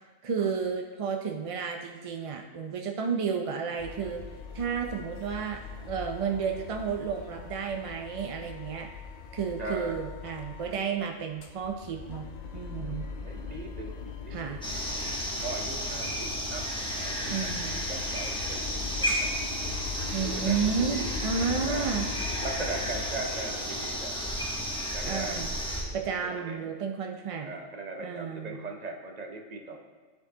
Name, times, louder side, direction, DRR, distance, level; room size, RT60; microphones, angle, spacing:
voice 1, 0.2-4.2 4.5-5.6 5.9-8.9 9.3-12.3 12.5-13.1 14.3-14.6 17.2-17.8 20.1-22.1 25.0-25.6 25.9-27.5 28.0-28.6, right 6 dB, 60° right, 2 dB, 0.3 m, -32 dB
sound 1, 3.8-10.9 11.2-23.2, left 5 dB, 55° left, 0.5 m, -40 dB
voice 2, 9.6-10.1 13.2-14.6 15.4-17.5 17.9-19.3 20.2-21.1 21.6-22.0 22.4-24.1 24.9-25.5 25.8-25.9 26.2-26.7 27.4-29.9, right 3 dB, 40° right, 2 dB, 0.7 m, -39 dB
sound 2, 14.6-25.8, equal, 5° left, 1.0 m, -33 dB
13.0 x 4.5 x 2.8 m, 1.4 s
omnidirectional pair, 1.3 m